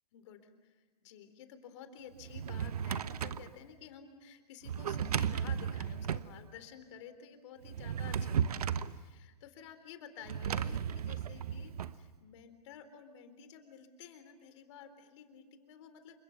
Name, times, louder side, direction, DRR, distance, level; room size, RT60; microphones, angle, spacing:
voice 1, 0.1-16.2, left 7 dB, 45° left, 9 dB, 3.9 m, -52 dB
Drawer open or close, 2.2-3.5 4.6-6.3 7.6-9.0 10.3-11.9, right 8 dB, 70° right, 1.2 m, -35 dB
29.0 x 25.5 x 7.2 m, 1.2 s
hypercardioid pair, 135°, 20 cm